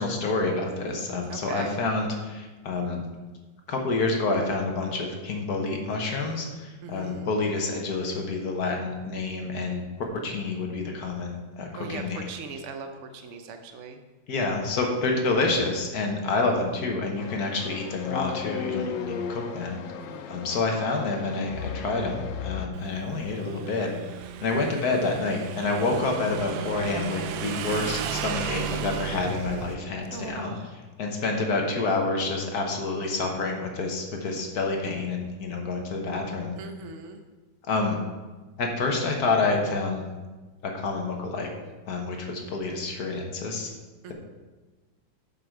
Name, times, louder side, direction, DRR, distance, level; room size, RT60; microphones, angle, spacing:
voice 1, 0.0-3.0 3.7-12.2 14.3-19.8 20.3-23.9 24.4-30.5 31.0-36.6 37.7-38.0 38.6-40.0 40.6-41.5 41.8-43.7, left 3 dB, 60° left, 2 dB, 1.5 m, -28 dB
voice 2, 1.3-1.7 6.8-7.3 11.7-14.0 20.0-20.5 30.1-30.7 36.6-37.2 44.0-44.1, right 4 dB, 65° right, 6 dB, 0.7 m, -39 dB
sound 1, 17.2-22.7, left 6 dB, 90° left, 1.4 m, -35 dB
Motorcycle / Engine, 22.7-29.8, right 8 dB, 90° right, 1.3 m, -34 dB
7.7 x 6.7 x 4.6 m, 1.2 s
omnidirectional pair, 2.0 m